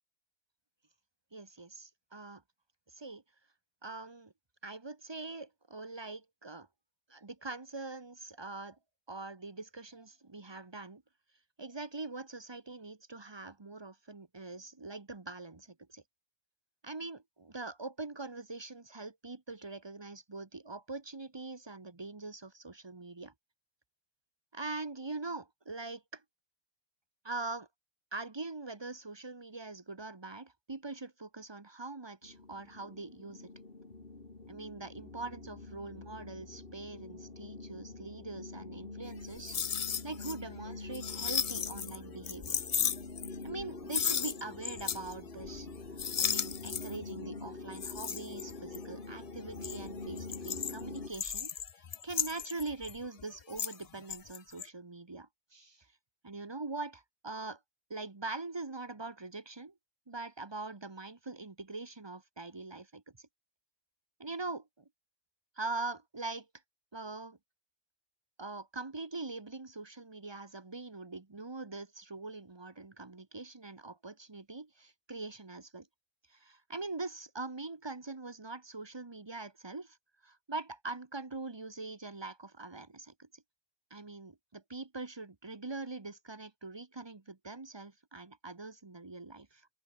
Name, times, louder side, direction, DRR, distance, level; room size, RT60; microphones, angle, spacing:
voice 1, 1.3-2.4 2.9-3.2 3.8-4.3 4.6-6.7 7.1-8.8 9.1-11.0 11.6-16.0 16.8-23.3 24.5-26.2 27.2-27.7 28.1-33.5 34.5-42.6 43.4-45.7 46.2-55.9 56.2-57.6 57.9-59.7 60.1-63.3 64.2-64.9 65.6-66.5 66.9-67.4 68.4-75.9 76.3-80.0 80.2-83.4 83.9-89.7, right 3 dB, 20° right, 1.0 m, -43 dB
sound 1, 32.2-51.1, left 3 dB, 40° left, 2.8 m, -45 dB
sound 2, 39.2-40.3 40.7-42.0 42.2-43.6 43.9-45.1 45.4-45.7 46.0-47.1 47.7-48.9 49.4-53.8 54.1-54.7, left 7 dB, 65° left, 0.3 m, -35 dB
open air
omnidirectional pair, 1.5 m